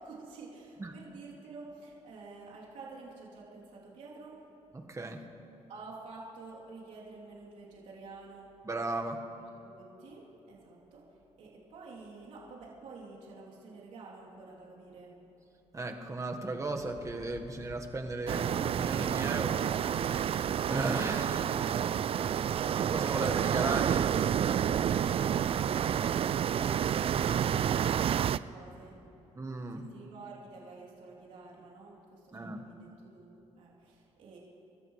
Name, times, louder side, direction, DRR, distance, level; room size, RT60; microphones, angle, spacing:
voice 1, 0.0-4.5 5.7-8.5 9.6-11.1 11.4-15.2 25.3-29.0 29.7-34.4, right 3 dB, 85° right, -6 dB, 3.3 m, -50 dB
voice 2, 4.7-5.2 8.6-9.2 15.7-19.6 19.9-21.6 22.6-24.1 29.3-29.9 32.3-32.6, right 2 dB, 25° right, 3 dB, 1.5 m, -36 dB
sound 1, 16.8-28.0, left 2 dB, 70° left, 4.1 m, -53 dB
sound 2, 18.3-28.4, right 9 dB, 50° right, 0.4 m, -29 dB
29.5 x 14.0 x 3.3 m, 3.0 s
cardioid pair, 85°, 12 cm